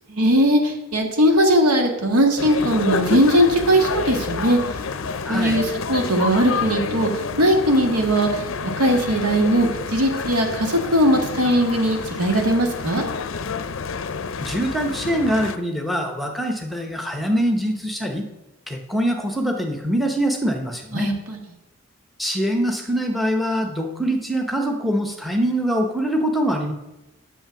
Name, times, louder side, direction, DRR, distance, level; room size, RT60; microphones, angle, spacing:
voice 1, 0.1-4.6 5.3-7.1 7.4-8.4 8.8-13.0 20.9-21.4, equal, 90° right, 3 dB, 1.7 m, -19 dB
sound 1, 2.4-15.6, left 5 dB, 60° left, 0.5 m, -29 dB
voice 2, 5.2-5.6 14.4-18.3 18.7-21.1 22.2-26.7, equal, ahead, 3 dB, 0.8 m, -23 dB
8.7 x 6.9 x 5.8 m, 0.96 s
head